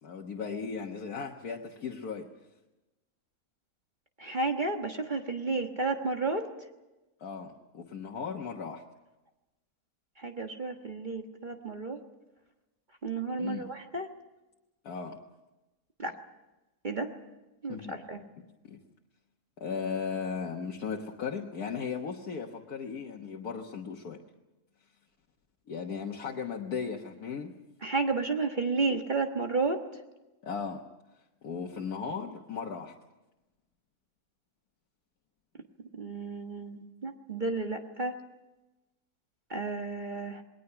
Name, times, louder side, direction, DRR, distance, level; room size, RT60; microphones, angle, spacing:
voice 1, 0.0-2.3 7.2-8.8 13.4-13.7 14.8-15.2 17.7-18.0 18.6-18.8 19.6-24.2 25.7-27.5 30.4-30.8 31.4-32.9, left 6 dB, 75° left, 1 dB, 1.8 m, -36 dB
voice 2, 4.2-6.4 10.2-12.0 13.0-14.1 16.0-16.1 16.8-17.1 17.6-18.2 27.8-29.8 35.9-38.1 39.5-40.4, right 3 dB, 30° right, 4 dB, 1.5 m, -32 dB
28.0 x 20.5 x 5.8 m, 1.0 s
omnidirectional pair, 1.6 m